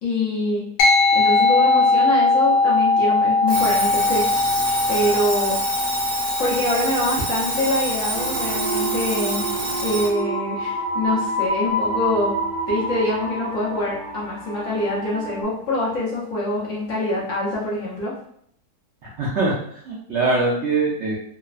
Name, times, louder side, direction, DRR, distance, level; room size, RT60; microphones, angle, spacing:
voice 1, 0.0-0.6 1.1-4.3 4.9-5.6 6.4-9.5 9.8-12.4 12.7-18.1, left 1 dB, 60° left, -6 dB, 0.8 m, -25 dB
sound 1, 0.8-10.5, left 3 dB, 80° left, 1.2 m, -21 dB
Alarm, 3.5-10.2, right 1 dB, 25° right, 0.6 m, -27 dB
sound 2, 8.1-15.4, right 1 dB, 45° right, 1.3 m, -28 dB
voice 2, 19.0-21.2, right 3 dB, 85° right, -4 dB, 0.6 m, -23 dB
3.0 x 2.0 x 2.4 m, 0.68 s
omnidirectional pair, 1.8 m